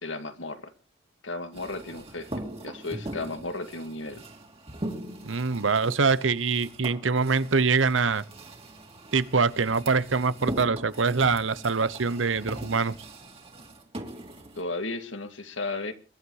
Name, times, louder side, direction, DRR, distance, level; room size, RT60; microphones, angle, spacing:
voice 1, 0.0-0.7 1.2-2.3 2.6-4.2 14.6-15.9, left 2 dB, 80° left, 2.3 m, -34 dB
sound 1, 1.5-14.6, right 1 dB, 30° right, 2.8 m, -41 dB
voice 2, 5.3-8.2 9.1-12.9, right 4 dB, 90° right, 0.9 m, -24 dB
23.0 x 11.5 x 4.8 m
head